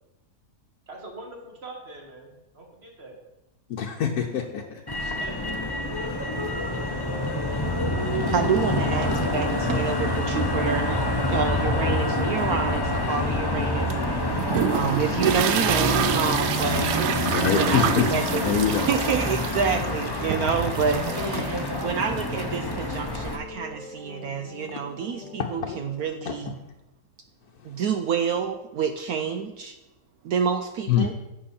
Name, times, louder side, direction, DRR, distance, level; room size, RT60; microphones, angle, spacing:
voice 1, 0.9-3.2 5.2-6.1, right 2 dB, 40° right, 0 dB, 2.2 m, -43 dB
voice 2, 3.7-4.6 5.0-5.1 17.2-18.9 25.6-25.8 26.3-26.4 30.9-31.1, left 7 dB, 70° left, 0 dB, 1.3 m, -25 dB
Motor vehicle (road), 4.9-23.4, left 1 dB, 20° left, 0.7 m, -27 dB
sound 1, 6.9-26.0, left 2 dB, 45° left, 1.5 m, -43 dB
voice 3, 8.3-11.0 11.3-13.9 14.6-16.9 17.5-18.4 18.9-26.6 27.6-29.7 30.2-31.1, right 6 dB, 70° right, 7 dB, 1.1 m, -28 dB
sound 2, 13.9-23.3, right 9 dB, 85° right, 1.3 m, -29 dB
11.5 x 7.8 x 4.3 m, 0.95 s
omnidirectional pair, 1.7 m